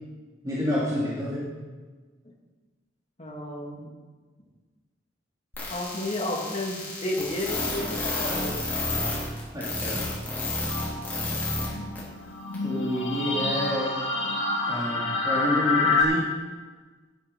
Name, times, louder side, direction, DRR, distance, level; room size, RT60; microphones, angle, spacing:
voice 1, 0.4-1.5 9.5-10.1 12.6-14.0 14.7-16.3, left 1 dB, 20° right, -8 dB, 2.7 m, -28 dB
voice 2, 3.2-3.9 5.7-8.7 11.3-11.5, left 1 dB, 35° left, -1 dB, 2.2 m, -32 dB
sound 1, 5.5-11.7 11.9-12.0 12.5-12.6, left 2 dB, 10° left, 3.9 m, -30 dB
sound 2, 10.7-16.0, left 3 dB, 85° left, 2.4 m, -28 dB
11.5 x 9.2 x 6.1 m, 1.4 s
head